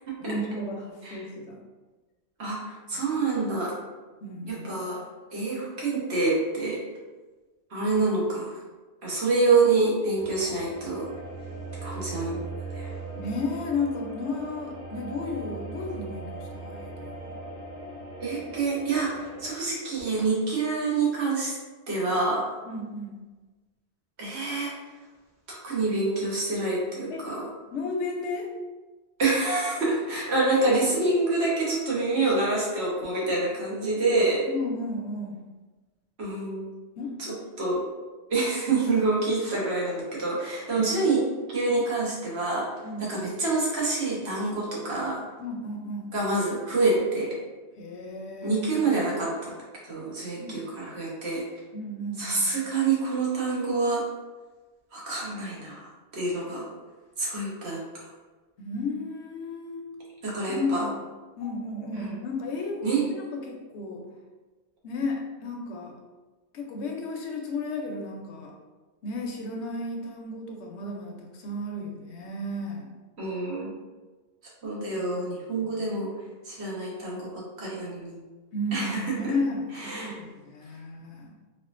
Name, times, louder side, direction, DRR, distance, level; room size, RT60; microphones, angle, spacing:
voice 1, 0.2-1.6 2.9-3.0 4.2-4.9 13.2-17.4 22.7-23.1 27.1-27.3 27.7-28.5 34.5-35.5 37.0-37.5 40.7-40.9 42.8-43.1 45.4-46.1 47.8-48.8 50.4-50.6 51.7-52.5 58.6-59.9 60.5-60.9 61.4-64.1 64.8-65.9 66.5-68.5 69.0-72.9 74.9-75.1 75.6-75.9 78.5-81.4, left 2 dB, 80° left, 1 dB, 0.9 m, -33 dB
voice 2, 2.4-3.7 4.5-5.0 5.3-6.8 7.7-8.6 9.0-11.1 11.8-12.4 12.7-12.9 18.2-21.5 21.9-22.4 24.2-24.7 25.5-27.5 29.2-34.4 36.2-36.7 37.6-37.8 38.3-41.2 41.5-42.7 43.0-45.2 46.1-47.4 48.4-49.5 49.8-51.4 52.2-54.0 54.9-55.9 56.1-56.7 57.2-58.1 60.2-60.8 61.9-62.1 62.8-63.0 73.2-73.7 74.6-76.1 76.4-78.2 78.7-79.3 79.7-80.1, right 3 dB, 70° right, -5 dB, 1.2 m, -27 dB
sound 1, 10.2-19.5, right 3 dB, 25° right, 0.9 m, -39 dB
4.2 x 2.4 x 2.5 m, 1.3 s
omnidirectional pair, 1.1 m